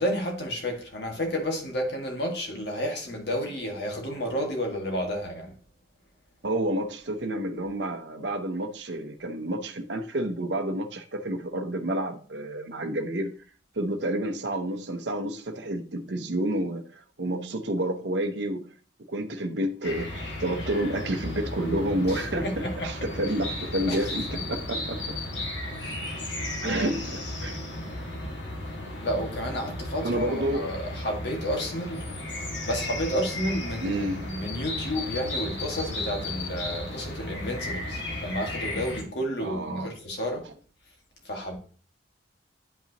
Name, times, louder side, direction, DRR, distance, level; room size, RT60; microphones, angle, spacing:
voice 1, 0.0-5.5 22.1-22.9 23.9-24.0 24.3-24.4 25.8-26.0 26.6-26.9 29.0-32.0 32.6-40.5 41.2-41.6, equal, 60° left, 1.8 m, -31 dB
voice 2, 6.4-13.3 13.7-18.7 19.1-20.1 20.4-25.0 26.6-27.7 30.0-30.7 33.8-34.3 39.4-39.9, right 1 dB, 65° right, 0.7 m, -29 dB
sound 1, 19.8-39.0, left 1 dB, 80° left, 2.1 m, -34 dB
8.8 x 5.5 x 2.9 m
head